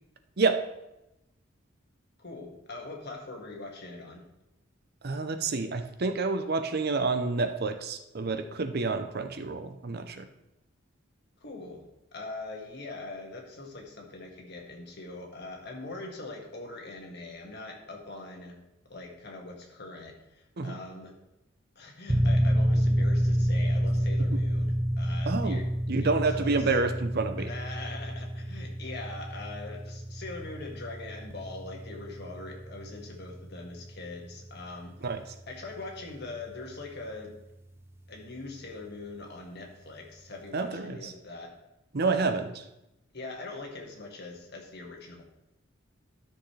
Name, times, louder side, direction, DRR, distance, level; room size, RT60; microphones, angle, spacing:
voice 1, 2.2-4.2 11.4-11.9 12.1-18.6 18.9-21.1 21.8-25.7 26.0-26.7 27.4-35.1 35.5-37.4 38.1-41.5 42.1-42.5 43.1-45.2, left 2 dB, 55° left, 0 dB, 1.8 m, -42 dB
voice 2, 5.0-10.3 20.6-20.7 24.3-24.4 25.3-25.6 25.9-27.5 35.0-35.2 40.5-41.0 41.9-42.5, right 3 dB, 50° right, 8 dB, 0.7 m, -28 dB
sound 1, 22.1-36.5, equal, 10° right, 0.5 m, -29 dB
12.5 x 6.4 x 3.3 m, 0.91 s
head